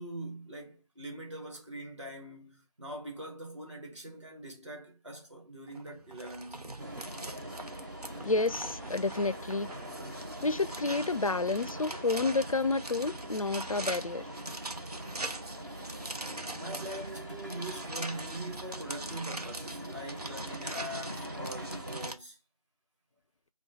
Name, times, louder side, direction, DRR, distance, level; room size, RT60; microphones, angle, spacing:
voice 1, 0.0-6.7 16.6-22.4, right 1 dB, 50° right, 2.1 m, -42 dB
sound 1, 5.7-22.2, right 2 dB, 85° right, 0.8 m, -42 dB
sound 2, 6.8-22.1, equal, 30° right, 0.8 m, -43 dB
voice 2, 8.2-9.7 10.4-14.3, left 3 dB, 60° left, 0.4 m, -30 dB
4.1 x 2.2 x 3.7 m
figure-of-eight pair, 170°, 19 cm